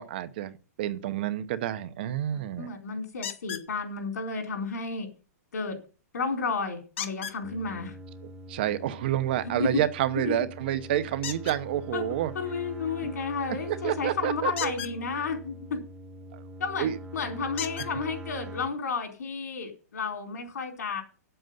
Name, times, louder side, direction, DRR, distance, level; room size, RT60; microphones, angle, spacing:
voice 1, 0.0-2.7 8.5-12.3 13.0-13.1 13.7-14.7 16.3-16.4 16.8-17.0, right 12 dB, 40° right, 13 dB, 0.8 m, -29 dB
voice 2, 2.3-5.1 5.5-5.8 6.1-8.0 9.4-9.8 10.3-10.4 11.9-12.0 12.3-15.8 16.6-21.0, left 4 dB, 80° left, 3 dB, 4.5 m, -32 dB
sound 1, 3.2-3.7 7.0-7.4 11.2-11.6 14.5-14.9 16.6-16.7 17.6-17.9 18.9-19.0 19.5-19.6, left 10 dB, 45° left, 1.4 m, -35 dB
sound 2, 7.4-18.7, right 1 dB, 10° right, 0.6 m, -43 dB
8.9 x 7.9 x 7.7 m, 0.36 s
hypercardioid pair, 170°, 9 cm